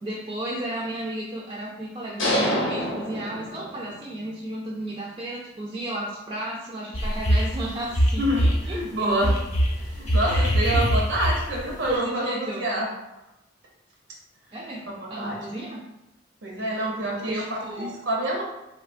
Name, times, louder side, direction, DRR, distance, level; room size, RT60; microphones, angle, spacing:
voice 1, 0.0-9.1 10.2-10.9 11.8-12.6 14.5-15.8 16.6-17.9, right 1 dB, 25° right, -5 dB, 0.3 m, -34 dB
sound 1, 2.2-4.0, equal, 75° left, 0.6 m, -26 dB
sound 2, 6.9-7.6 7.9-8.6 9.2-11.7, equal, 35° left, 0.5 m, -22 dB
voice 2, 8.2-9.3 9.9-12.9 14.9-15.4 16.4-18.4, right 1 dB, 75° right, -2 dB, 0.6 m, -27 dB
3.1 x 2.2 x 2.5 m, 0.92 s
head